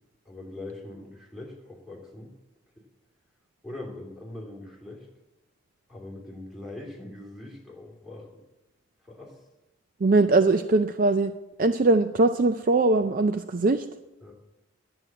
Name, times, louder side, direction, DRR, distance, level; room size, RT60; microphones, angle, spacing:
voice 1, 0.2-2.3 3.6-5.1 5.9-8.4 9.0-9.4 14.2-14.3, left 2 dB, ahead, -3 dB, 3.0 m, -42 dB
voice 2, 10.0-11.3 11.6-13.8, right 3 dB, 45° right, 9 dB, 0.4 m, -21 dB
10.5 x 7.8 x 8.7 m, 1.0 s
head